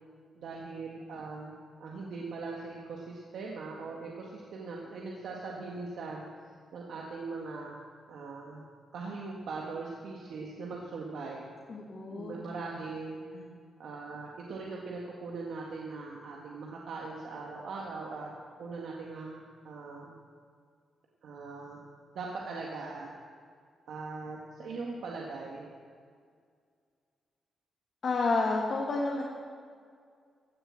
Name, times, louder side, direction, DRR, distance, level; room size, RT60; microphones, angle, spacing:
voice 1, 0.3-6.2 6.7-7.7 8.1-8.6 8.9-11.4 12.1-13.2 13.8-18.3 18.6-20.2 21.2-21.8 22.1-23.1 23.9-25.6, right 3 dB, 70° right, -2 dB, 1.6 m, -40 dB
voice 2, 11.7-12.3 13.3-13.5 28.0-29.2, left 3 dB, 40° left, -2 dB, 1.5 m, -30 dB
15.5 x 7.3 x 7.5 m, 2.1 s
wide cardioid pair, 165°, 0 cm